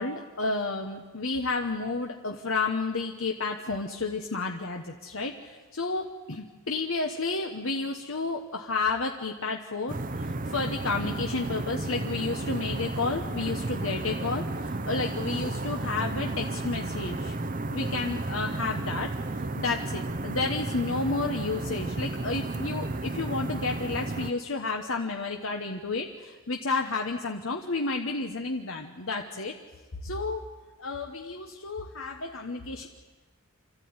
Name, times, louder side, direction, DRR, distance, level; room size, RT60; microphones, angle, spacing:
voice 1, 0.0-17.4 17.7-29.5 30.0-30.5 30.8-32.9, left 3 dB, 65° left, 3 dB, 1.2 m, -31 dB
sound 1, 9.9-24.3, right 2 dB, 40° right, 0.8 m, -33 dB
26.0 x 14.0 x 9.6 m, 1.3 s
head